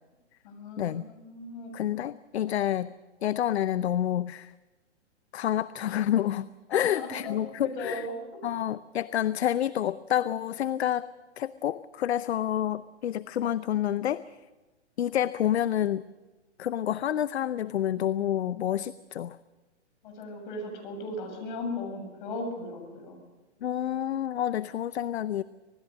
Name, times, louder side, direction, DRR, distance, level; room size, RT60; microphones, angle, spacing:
voice 1, 0.4-1.7 6.7-8.4 20.0-23.1, left 2 dB, 45° left, 4 dB, 7.5 m, -37 dB
voice 2, 1.7-2.9 3.2-4.5 5.3-8.1 8.4-11.1 11.4-14.2 15.0-16.1 16.6-19.4 23.6-25.4, left 11 dB, 65° left, 16 dB, 0.7 m, -28 dB
26.0 x 19.5 x 6.4 m, 1.2 s
hypercardioid pair, 145°, 35 cm